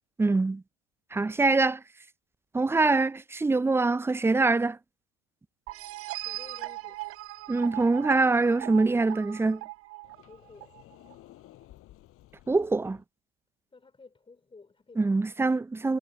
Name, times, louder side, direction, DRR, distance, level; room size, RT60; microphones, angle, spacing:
voice 1, 0.2-0.6 1.1-1.8 2.5-4.8 7.5-9.6 12.5-13.0 15.0-16.0, right 3 dB, 10° right, 0.6 m, -24 dB
sound 1, 5.7-11.1, right 19 dB, 50° right, 2.2 m, -39 dB
voice 2, 6.2-7.0 10.3-10.7 13.7-15.1, left 4 dB, 15° left, 4.7 m, -52 dB
Sliding door, 10.0-13.0, left 15 dB, 45° left, 6.3 m, -54 dB
figure-of-eight pair, 65°, 30 cm